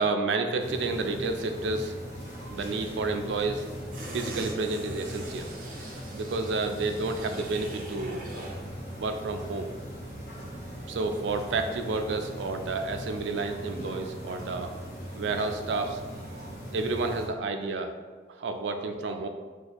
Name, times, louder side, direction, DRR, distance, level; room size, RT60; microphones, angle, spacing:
voice 1, 0.0-1.9 2.3-3.6 4.1-5.5 6.1-8.2 9.0-9.7 10.8-14.7 15.1-16.0 16.3-16.4 16.7-17.9 18.4-19.3, right 3 dB, 85° right, 6 dB, 0.4 m, -30 dB
sound 1, 0.6-17.3, equal, 55° left, 1.1 m, -40 dB
sound 2, 3.9-8.7 9.0-9.1, right 2 dB, 50° right, 0.7 m, -43 dB
2.7 x 2.3 x 4.1 m, 1.4 s
head